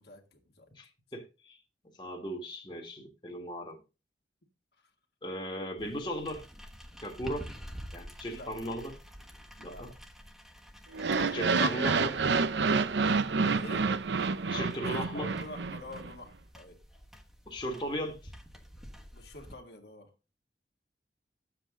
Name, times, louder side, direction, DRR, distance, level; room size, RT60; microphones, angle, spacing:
voice 1, 0.0-0.8 8.3-8.5 9.6-9.9 13.5-13.9 14.8-16.8 19.1-20.1, left 1 dB, 60° left, 1.9 m, -47 dB
voice 2, 0.7-1.6 2.0-3.8 5.2-6.5 7.0-7.5 7.9-9.0 9.6-9.9 11.2-12.2 14.5-15.3 17.5-18.3, equal, 25° left, 1.6 m, -37 dB
sound 1, 5.8-19.5, equal, ahead, 1.2 m, -49 dB
sound 2, 10.9-16.1, right 4 dB, 80° right, 0.7 m, -28 dB
11.0 x 7.7 x 3.7 m
head